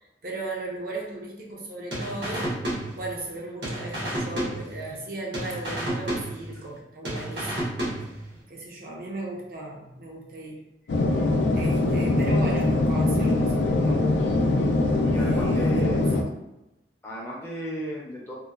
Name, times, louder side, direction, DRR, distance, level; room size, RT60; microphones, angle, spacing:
voice 1, 0.2-2.6 2.9-7.6 8.5-10.6 11.5-14.1 15.2-16.1, right 2 dB, 55° right, -2 dB, 0.5 m, -36 dB
sound 1, 1.9-3.3 3.6-5.1 5.3-6.8 7.0-8.4, right 1 dB, 80° right, 0.8 m, -31 dB
sound 2, 10.9-16.2, left 2 dB, 85° left, 0.4 m, -22 dB
voice 2, 15.0-16.0 17.0-18.3, equal, 15° left, -4 dB, 0.5 m, -34 dB
2.8 x 2.0 x 2.3 m, 0.92 s
head